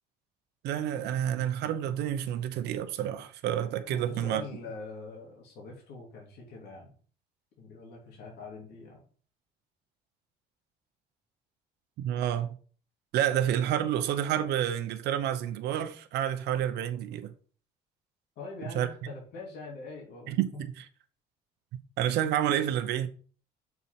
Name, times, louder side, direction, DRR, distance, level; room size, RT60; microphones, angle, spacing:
voice 1, 0.6-4.4 12.0-12.6 13.1-17.3 18.7-18.9 20.3-20.5 22.0-23.1, right 11 dB, 80° right, 0.8 m, -29 dB
voice 2, 3.9-6.9 7.6-9.0 18.3-20.3, left 3 dB, 75° left, 3.0 m, -43 dB
6.8 x 4.2 x 5.8 m
cardioid pair, 110°, 17 cm